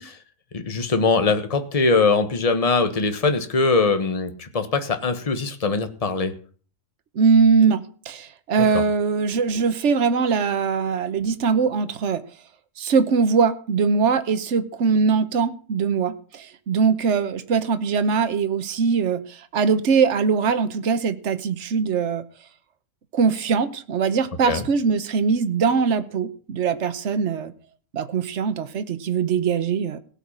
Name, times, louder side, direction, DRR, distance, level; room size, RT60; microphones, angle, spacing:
voice 1, 0.5-6.3 8.6-8.7 24.5-24.7, left 4 dB, 30° left, 8 dB, 1.3 m, -22 dB
voice 2, 7.1-12.2 12.8-22.2 23.1-27.5 27.9-30.0, right 5 dB, 65° right, 11 dB, 1.3 m, -21 dB
17.0 x 5.7 x 8.7 m, 0.44 s
omnidirectional pair, 1.3 m